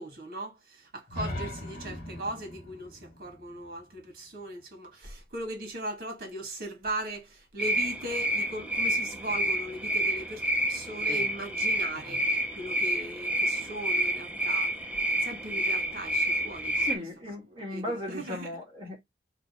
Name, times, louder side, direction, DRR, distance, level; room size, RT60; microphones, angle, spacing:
voice 1, 0.0-10.4 10.7-14.7 15.2-16.9 17.3-17.4 17.7-18.5, right 1 dB, 55° right, 1.8 m, -39 dB
sound 1, 1.1-4.9, left 1 dB, 55° left, 1.3 m, -40 dB
sound 2, 7.6-17.0, right 1 dB, 10° right, 0.6 m, -29 dB
voice 2, 16.8-19.0, left 1 dB, 30° right, 1.6 m, -36 dB
3.3 x 3.0 x 4.1 m
head